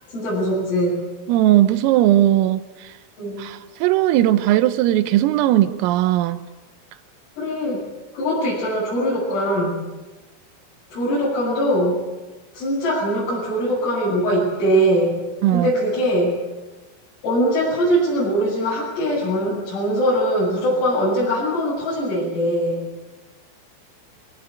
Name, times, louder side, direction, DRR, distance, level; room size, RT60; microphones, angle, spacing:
voice 1, 0.1-1.0 3.2-3.4 7.4-7.9 8.1-9.8 10.9-12.0 12.5-15.2 15.5-16.3 17.2-22.8, equal, 80° left, -8 dB, 10.5 m, -21 dB
voice 2, 1.3-2.6 3.4-6.4 15.4-15.7, right 13 dB, 90° right, 11 dB, 3.6 m, -18 dB
24.5 x 19.5 x 9.0 m, 1.2 s
omnidirectional pair, 5.8 m